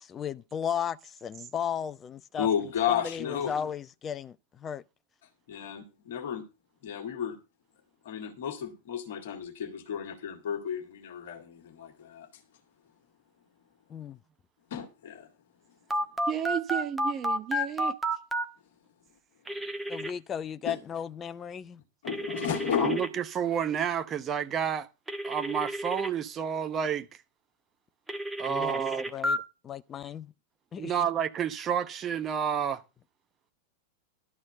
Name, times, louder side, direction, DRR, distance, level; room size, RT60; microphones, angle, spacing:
voice 1, 0.0-2.5 2.9-4.8 13.9-14.2 19.9-21.8 28.5-28.8 29.1-29.4 29.6-30.3 30.7-30.9, left 8 dB, 25° left, 0.5 m, -35 dB
voice 2, 2.4-3.5 5.5-6.4 6.8-7.4 8.1-12.3 14.7-15.3 20.7-20.8 22.0-23.0, left 8 dB, 55° left, 2.0 m, -32 dB
Telephone, 15.9-18.5 19.5-20.1 22.1-23.1 25.1-26.1 28.1-29.4, equal, 5° right, 1.3 m, -31 dB
voice 3, 16.3-17.9 22.8-24.9 25.2-27.1 28.4-29.1 30.8-32.8, right 8 dB, 25° right, 1.0 m, -30 dB
12.0 x 4.3 x 8.0 m
figure-of-eight pair, 90°, 0 cm